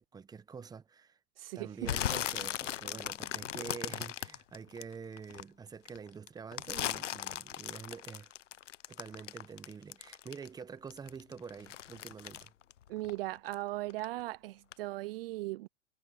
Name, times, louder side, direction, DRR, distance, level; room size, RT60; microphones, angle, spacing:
voice 1, 0.0-1.2 1.5-8.3 8.9-12.5, right 6 dB, 10° right, 1.0 m, -47 dB
voice 2, 1.4-1.7 12.9-15.7, right 19 dB, 55° right, 0.5 m, -38 dB
sound 1, 1.8-5.4 5.9-10.6 10.9-13.6 13.9-14.3 14.7-14.8, left 11 dB, 90° left, 0.9 m, -38 dB
hypercardioid pair, 130°, 36 cm